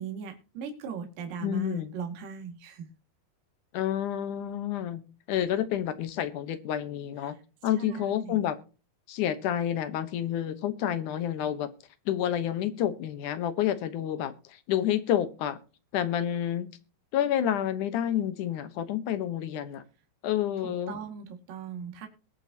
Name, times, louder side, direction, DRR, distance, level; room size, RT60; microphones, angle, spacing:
voice 1, 0.0-2.9 7.2-7.4 7.8-8.4 20.6-22.1, right 7 dB, 65° right, 4 dB, 3.7 m, -39 dB
voice 2, 1.4-1.9 3.7-5.0 5.3-7.4 7.6-8.6 9.1-11.7 12.1-15.6 15.9-16.7 17.1-19.8 20.2-21.0, left 11 dB, 65° left, 12 dB, 2.2 m, -29 dB
21.0 x 7.5 x 2.9 m, 0.35 s
omnidirectional pair, 4.4 m